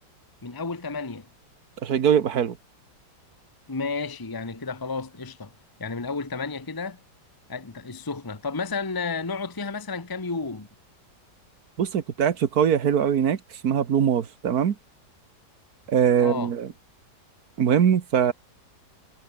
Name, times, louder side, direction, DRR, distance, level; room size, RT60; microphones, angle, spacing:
voice 1, 0.4-1.3 3.7-5.5 5.8-7.0 7.5-10.7 16.2-16.5, left 4 dB, 15° left, 1.2 m, -32 dB
voice 2, 1.8-2.6 11.8-14.8 15.9-16.7 17.6-18.3, right 8 dB, 60° right, 1.8 m, -22 dB
omnidirectional pair, 1.9 m